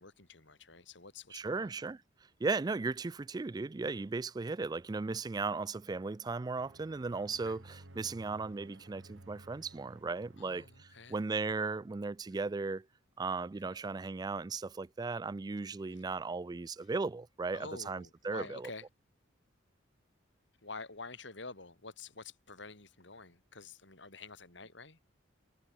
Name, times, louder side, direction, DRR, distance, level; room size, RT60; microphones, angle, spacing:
voice 1, 0.0-1.7 7.4-7.6 10.4-11.2 12.3-12.4 13.5-13.8 15.9-16.0 16.8-16.9 17.5-18.9 20.6-25.0, left 3 dB, 65° left, 3.7 m, -48 dB
voice 2, 1.3-2.0 2.4-12.9 13.2-18.6, right 4 dB, 20° right, 0.3 m, -36 dB
sound 1, 6.6-11.7, right 1 dB, 75° right, 1.9 m, -57 dB
head